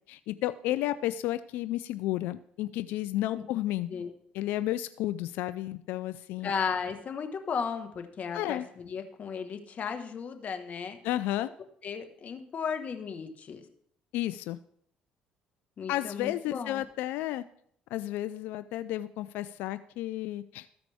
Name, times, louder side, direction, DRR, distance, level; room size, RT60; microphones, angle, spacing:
voice 1, 0.1-3.9 4.3-6.5 8.3-8.7 11.0-11.5 14.1-14.6 15.9-17.5 17.9-20.7, left 14 dB, 75° left, 14 dB, 0.3 m, -32 dB
voice 2, 6.4-11.0 11.8-13.6 15.8-16.8, left 6 dB, 50° left, 7 dB, 1.4 m, -35 dB
14.5 x 4.9 x 3.5 m, 0.66 s
supercardioid pair, 65°, 3 cm